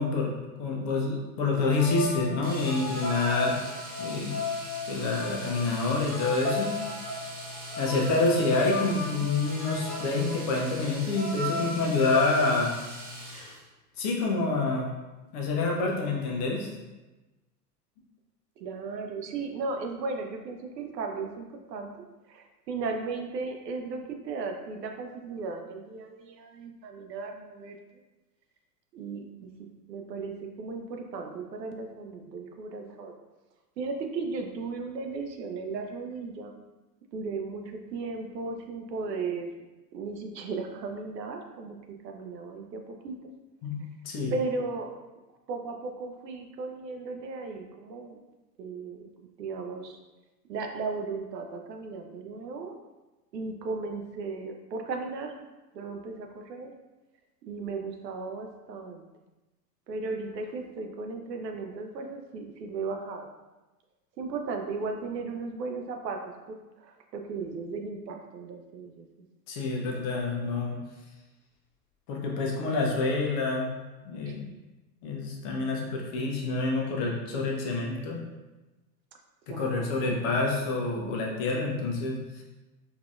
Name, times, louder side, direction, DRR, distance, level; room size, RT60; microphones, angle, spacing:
voice 1, 0.0-3.5 4.0-4.3 4.9-6.7 7.8-12.7 14.0-14.8 15.3-16.7 43.6-43.7 44.0-44.3 69.5-70.8 72.1-73.7 74.1-74.4 75.0-78.2 79.5-82.4, left 3 dB, 40° left, -1 dB, 0.8 m, -27 dB
sound 1, 1.5-12.6, left 3 dB, 10° left, 0.3 m, -35 dB
Domestic sounds home sounds, 2.4-13.7 15.8-15.9 16.2-16.3, equal, 20° right, 0.8 m, -42 dB
voice 2, 18.6-21.9 22.3-27.8 28.9-29.5 29.9-33.1 33.8-36.6 37.1-39.5 39.9-43.2 44.3-44.9 45.5-48.2 48.6-49.1 49.4-50.0 50.5-52.7 53.3-55.3 55.7-56.7 57.4-59.1 59.9-63.3 64.2-66.2 66.5-69.1 74.3-74.4 79.5-79.9, right 4 dB, 75° right, 4 dB, 0.6 m, -36 dB
3.9 x 2.7 x 2.4 m, 1.1 s
hypercardioid pair, 95°, 49 cm